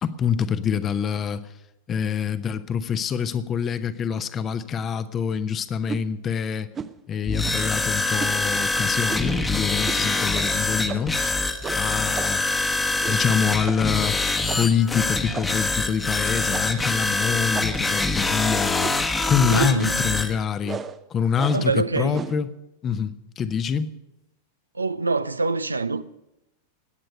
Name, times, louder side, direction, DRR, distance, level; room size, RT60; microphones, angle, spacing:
voice 1, 0.0-1.5 1.9-6.7 7.1-11.1 11.8-12.4 13.1-18.9 19.3-20.8 21.1-22.5 22.8-23.9, left 7 dB, 25° left, 0.9 m, -25 dB
sound 1, 5.9-6.1 6.7-7.0 7.4-7.7 8.2-8.4 9.1-9.4 9.8-10.0 10.3-10.5 10.9-11.2 11.6-12.5 13.0-13.3 13.7-13.9 14.5-14.8 15.3-15.7 16.5-16.9 17.5-18.0 18.8-19.1 19.6-19.9 20.6-21.0 21.4-21.7 22.1-22.4, right 6 dB, 20° right, 0.7 m, -35 dB
sound 2, 7.3-20.3, left 2 dB, 10° left, 1.2 m, -24 dB
voice 2, 19.5-20.1 21.5-22.2 24.7-26.0, right 3 dB, 80° right, 0.5 m, -25 dB
19.5 x 9.1 x 6.6 m
figure-of-eight pair, 90°, 0 cm